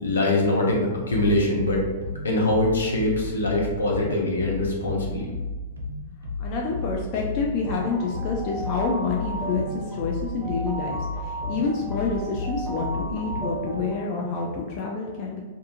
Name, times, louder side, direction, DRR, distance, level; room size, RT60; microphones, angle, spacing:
voice 1, 0.0-1.9 2.2-5.3, left 2 dB, 80° left, -2 dB, 0.7 m, -23 dB
sound 1, 1.1-13.8, left 2 dB, 90° right, 0.4 m, -33 dB
voice 2, 6.4-15.4, left 4 dB, 45° left, -1 dB, 0.4 m, -28 dB
sound 2, 7.6-14.0, right 2 dB, 20° right, 0.6 m, -36 dB
2.6 x 2.4 x 2.5 m, 1.3 s
hypercardioid pair, 110°, 0 cm